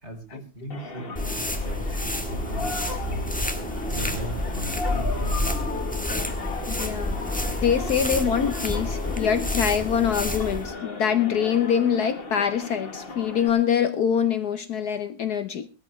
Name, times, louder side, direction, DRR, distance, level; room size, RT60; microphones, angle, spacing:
voice 1, 0.0-3.2 3.9-5.7, right 1 dB, 35° right, 4.2 m, -37 dB
sound 1, 0.7-13.5, left 4 dB, 35° left, 1.4 m, -36 dB
sound 2, 1.2-10.7, left 1 dB, 5° left, 1.0 m, -29 dB
voice 2, 6.7-7.3 7.6-15.7, left 8 dB, 65° left, 1.3 m, -24 dB
18.5 x 13.5 x 3.2 m
omnidirectional pair, 2.0 m